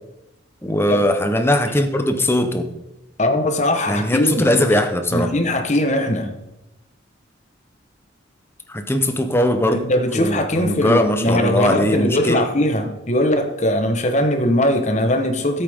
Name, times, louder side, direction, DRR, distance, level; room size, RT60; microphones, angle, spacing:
voice 1, 0.6-2.7 3.9-5.3 8.7-9.8 10.1-12.4, left 1 dB, 10° left, 6 dB, 0.8 m, -20 dB
voice 2, 3.2-4.5 5.1-6.3 9.7-15.6, left 1 dB, 35° left, 6 dB, 1.2 m, -20 dB
13.5 x 8.3 x 3.6 m, 0.94 s
head